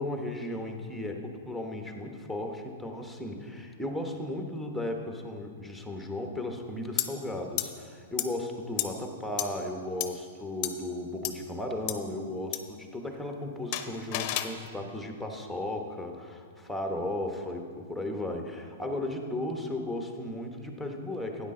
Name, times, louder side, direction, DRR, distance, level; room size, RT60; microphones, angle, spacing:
voice 1, 0.0-21.5, left 1 dB, ahead, 3 dB, 1.2 m, -35 dB
sound 1, 7.0-7.1 7.6-7.7 8.2-8.3 8.8-8.9 9.4-9.5 10.0-10.1 10.6-10.7 11.2-11.3 11.9-12.0 12.5-12.6 13.7-14.5, left 14 dB, 45° left, 0.7 m, -30 dB
12.5 x 9.6 x 3.9 m, 2.1 s
hypercardioid pair, 125°, 0 cm